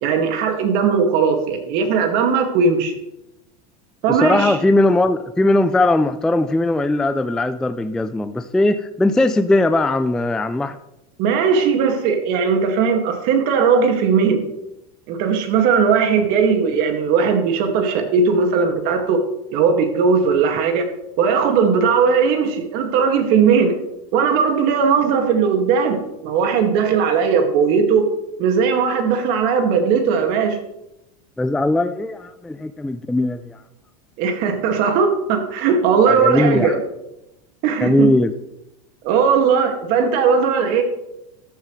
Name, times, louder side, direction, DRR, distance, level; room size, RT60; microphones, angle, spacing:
voice 1, 0.0-2.9 4.0-4.6 11.2-14.4 15.1-19.2 19.5-20.9 21.2-23.7 24.1-28.1 28.4-30.6 34.2-36.8 37.6-38.1 39.0-40.8, right 6 dB, 50° right, 4 dB, 2.1 m, -18 dB
voice 2, 4.1-10.8 31.4-33.6 36.1-36.8 37.8-38.3, left 2 dB, 5° left, 10 dB, 0.3 m, -19 dB
13.5 x 10.0 x 3.2 m, 0.90 s
supercardioid pair, 135°, 19 cm